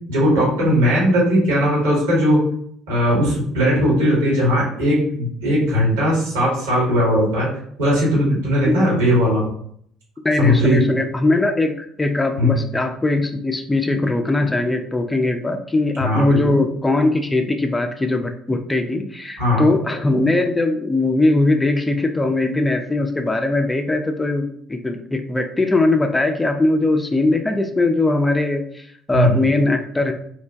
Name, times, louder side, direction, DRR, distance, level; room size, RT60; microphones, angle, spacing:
voice 1, 0.1-2.4 2.9-7.5 7.8-9.4 10.4-10.8 12.4-12.5 16.0-16.6 19.4-19.7 29.1-29.4, equal, 75° right, -5 dB, 1.4 m, -18 dB
voice 2, 10.2-30.1, left 2 dB, 15° left, 5 dB, 0.3 m, -20 dB
3.1 x 2.1 x 2.5 m, 0.64 s
figure-of-eight pair, 50°, 0 cm